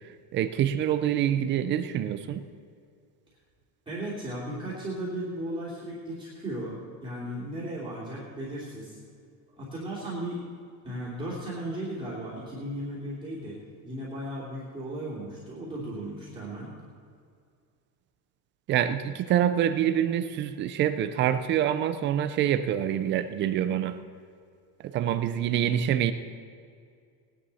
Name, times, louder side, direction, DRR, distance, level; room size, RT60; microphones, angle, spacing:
voice 1, 0.3-2.4 18.7-24.0 24.9-26.1, right 10 dB, 30° right, 11 dB, 0.3 m, -26 dB
voice 2, 3.9-9.0 9.6-10.4 10.8-13.6 13.8-16.7, right 1 dB, 10° right, -8 dB, 2.7 m, -36 dB
18.0 x 10.5 x 4.1 m, 2.2 s
cardioid pair, 170°, 43 cm